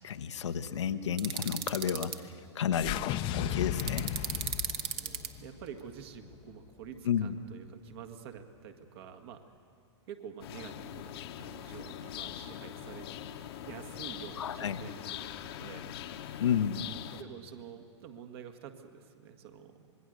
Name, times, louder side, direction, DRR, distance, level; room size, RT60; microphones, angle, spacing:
voice 1, 0.0-2.1 2.5-4.1 7.0-7.4 14.4-14.8 16.4-16.9, left 8 dB, 75° left, 7 dB, 1.0 m, -31 dB
sound 1, 1.2-2.2 3.8-5.3, right 10 dB, 35° right, 1.2 m, -35 dB
sound 2, 2.7-7.0, left 12 dB, 35° left, 0.8 m, -36 dB
voice 2, 4.8-9.4 10.1-13.1 13.6-15.9 17.1-19.9, right 8 dB, 55° right, 6 dB, 1.9 m, -48 dB
sound 3, 10.4-17.2, left 10 dB, 55° left, 1.2 m, -42 dB
26.0 x 20.5 x 6.6 m, 2.3 s
hypercardioid pair, 110°, 15 cm